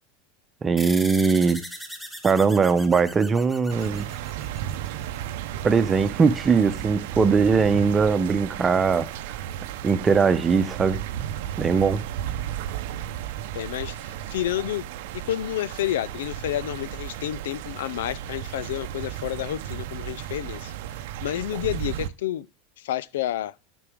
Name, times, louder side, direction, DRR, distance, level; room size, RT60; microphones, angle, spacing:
voice 1, 0.6-1.6 2.2-4.1 5.6-9.1 9.8-11.0 11.6-12.0, right 5 dB, 25° right, 0.9 m, -20 dB
sound 1, 0.8-5.6, equal, 5° left, 2.1 m, -39 dB
sound 2, 3.7-22.1, right 11 dB, 70° right, 0.7 m, -34 dB
voice 2, 13.5-14.9 15.1-20.7 21.2-22.5 22.8-23.5, left 13 dB, 80° left, 0.4 m, -30 dB
9.8 x 6.1 x 3.6 m
hypercardioid pair, 100°, 0 cm